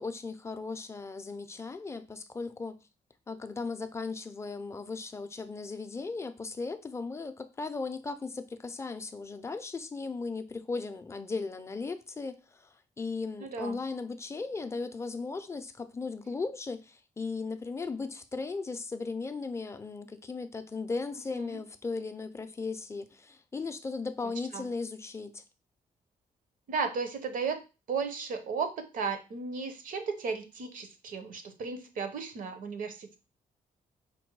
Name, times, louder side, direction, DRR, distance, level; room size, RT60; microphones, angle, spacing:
voice 1, 0.0-2.8 3.3-25.4, left 4 dB, 20° left, 0.4 m, -37 dB
voice 2, 13.4-13.8 21.3-21.6 24.5-24.7 26.7-27.6 27.9-33.1, right 5 dB, 65° right, 0.9 m, -35 dB
5.2 x 2.2 x 4.5 m
cardioid pair, 145°, 15 cm